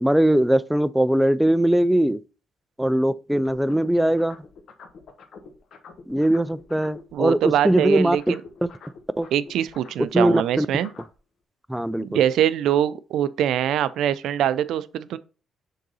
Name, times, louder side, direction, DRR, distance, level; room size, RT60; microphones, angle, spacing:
voice 1, 0.0-2.2 2.8-4.4 6.1-8.2 8.6-8.7 9.2-9.3 10.1-10.7 11.7-12.2, right 1 dB, 5° right, 0.3 m, -20 dB
sound 1, 3.4-7.1 7.4-11.1, left 5 dB, 65° left, 1.1 m, -46 dB
voice 2, 7.1-8.4 9.3-10.9 12.0-15.2, right 10 dB, 80° right, 0.4 m, -23 dB
6.6 x 3.8 x 4.0 m
cardioid pair, 90°, 0 cm